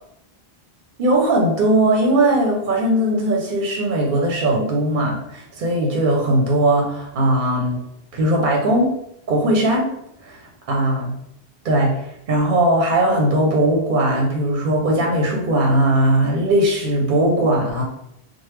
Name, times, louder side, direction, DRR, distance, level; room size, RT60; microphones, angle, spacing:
voice 1, 1.0-7.8 8.1-8.9 9.3-9.9 10.2-11.2 11.6-17.8, right 1 dB, 60° right, -1 dB, 0.7 m, -19 dB
3.2 x 2.1 x 3.1 m, 0.77 s
omnidirectional pair, 1.0 m